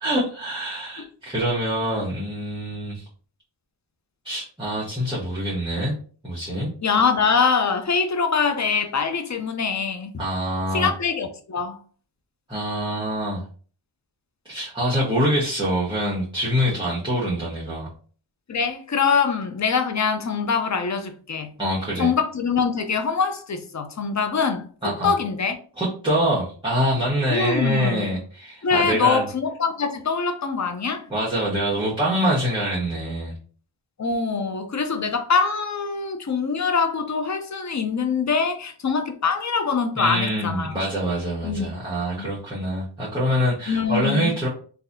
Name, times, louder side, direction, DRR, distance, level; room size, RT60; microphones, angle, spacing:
voice 1, 0.0-3.0 4.2-5.9 6.2-6.7 10.2-10.9 12.5-13.4 14.5-17.9 21.6-22.1 24.8-25.1 25.8-29.3 31.1-33.3 39.9-44.5, equal, 10° right, 1.2 m, -25 dB
voice 2, 6.8-10.1 10.7-11.8 18.5-21.5 22.0-24.7 25.0-25.6 27.3-28.2 28.6-31.0 34.0-40.8 41.4-41.7 42.2-42.3 43.7-44.3, left 5 dB, 40° left, 0.6 m, -23 dB
3.9 x 2.7 x 2.6 m
wide cardioid pair, 85°, 45 cm